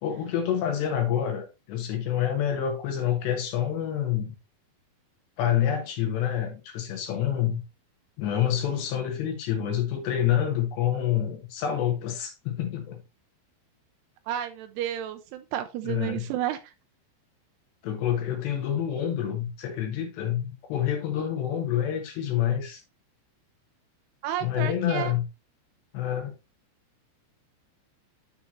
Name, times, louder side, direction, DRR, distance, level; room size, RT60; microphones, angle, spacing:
voice 1, 0.0-4.3 5.4-7.6 8.2-13.0 15.9-16.3 17.8-22.8 24.4-25.2 25.9-26.3, left 10 dB, 70° left, 3.4 m, -27 dB
voice 2, 14.3-16.7 24.2-25.1, right 11 dB, 90° right, 2.3 m, -31 dB
10.0 x 5.8 x 3.0 m
omnidirectional pair, 5.5 m